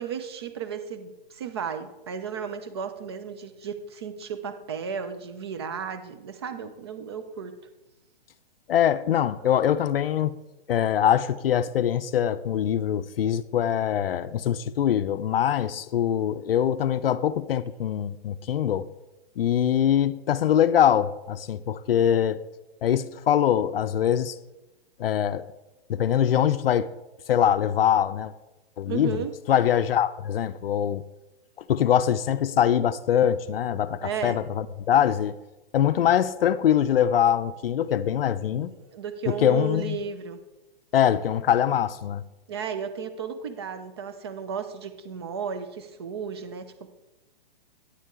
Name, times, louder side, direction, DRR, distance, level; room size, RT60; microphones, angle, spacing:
voice 1, 0.0-7.6 28.8-29.4 34.0-34.4 38.5-40.4 42.5-46.9, right 6 dB, 25° right, 0.6 m, -34 dB
voice 2, 8.7-10.3 10.7-18.9 19.4-22.4 22.8-24.4 25.0-25.4 25.9-26.9 27.3-28.3 28.8-29.2 29.5-31.0 31.7-35.4 35.7-38.7 39.4-40.0 40.9-42.2, left 10 dB, 75° left, 0.5 m, -23 dB
9.8 x 8.3 x 3.7 m
hypercardioid pair, 175°, 29 cm